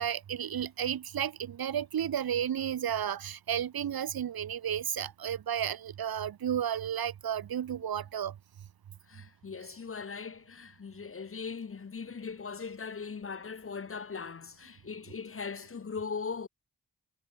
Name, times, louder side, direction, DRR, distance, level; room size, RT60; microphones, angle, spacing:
voice 1, 0.0-8.3, right 9 dB, 65° right, 0.8 m, -32 dB
voice 2, 9.1-16.5, left 5 dB, 35° left, 0.7 m, -39 dB
cardioid pair, 40°, 40 cm